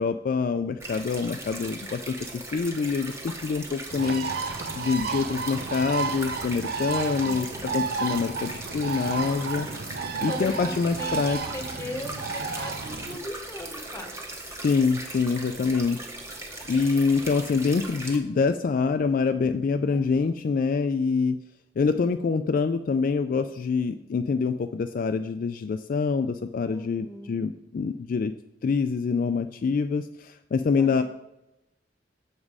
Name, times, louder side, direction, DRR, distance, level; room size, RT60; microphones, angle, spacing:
voice 1, 0.0-4.3 4.7-7.5 7.7-9.7 10.2-11.4 14.6-16.1 16.7-21.4 21.8-28.3 28.6-31.0, left 5 dB, 50° left, 8 dB, 0.3 m, -25 dB
sound 1, 0.8-18.2, right 2 dB, 15° right, 1.1 m, -39 dB
Bird, 3.9-13.2, right 4 dB, 60° right, 0.7 m, -32 dB
voice 2, 7.2-8.1 10.3-14.4 19.8-20.4 26.7-27.4 30.8-31.0, left 1 dB, 15° left, 5 dB, 1.1 m, -40 dB
7.3 x 6.2 x 4.8 m, 0.90 s
head